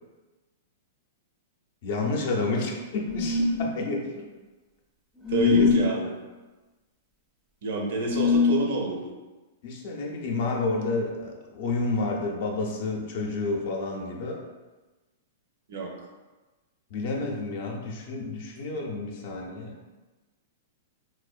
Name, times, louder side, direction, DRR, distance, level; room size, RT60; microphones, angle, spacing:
voice 1, 1.8-4.3 5.4-5.7 9.6-14.4 16.9-19.8, left 3 dB, 60° left, 0 dB, 0.5 m, -30 dB
sound 1, 3.1-3.7 5.2-5.9 8.0-8.6, left 5 dB, 10° right, 0.4 m, -22 dB
voice 2, 5.3-6.1 7.6-9.1 15.7-15.9, right 2 dB, 65° right, 0 dB, 0.5 m, -28 dB
2.5 x 2.1 x 2.4 m, 1.2 s
hypercardioid pair, 115°, 0 cm